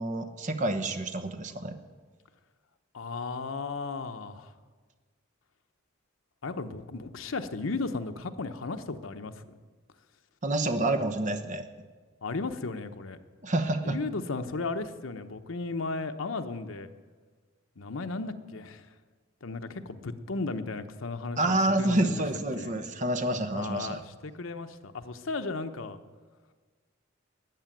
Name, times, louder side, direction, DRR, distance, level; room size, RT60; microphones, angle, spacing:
voice 1, 0.0-1.8 10.4-11.7 13.4-14.0 21.4-24.0, right 1 dB, 40° right, 8 dB, 1.1 m, -28 dB
voice 2, 2.9-4.5 6.4-9.3 12.2-13.2 13.8-16.9 17.8-18.9 19.4-22.2 22.6-22.7 23.5-26.0, left 3 dB, 85° left, 8 dB, 0.9 m, -35 dB
13.5 x 9.3 x 9.1 m, 1.4 s
head